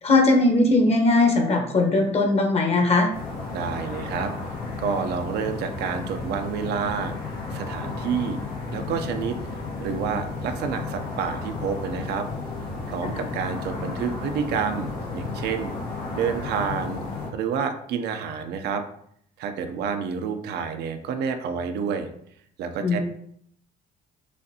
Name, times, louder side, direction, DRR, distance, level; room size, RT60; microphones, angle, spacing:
voice 1, 0.0-3.1 22.8-23.0, left 2 dB, 40° left, 3 dB, 1.0 m, -19 dB
sound 1, 3.1-17.3, left 3 dB, 90° left, 1.5 m, -33 dB
voice 2, 3.5-4.3 4.8-8.4 8.7-9.4 9.8-12.3 12.9-15.7 16.1-17.0 17.3-18.8 19.4-22.1 22.6-23.0, right 6 dB, 75° right, 6 dB, 0.6 m, -29 dB
6.3 x 2.6 x 2.8 m, 0.67 s
cardioid pair, 110°, 17 cm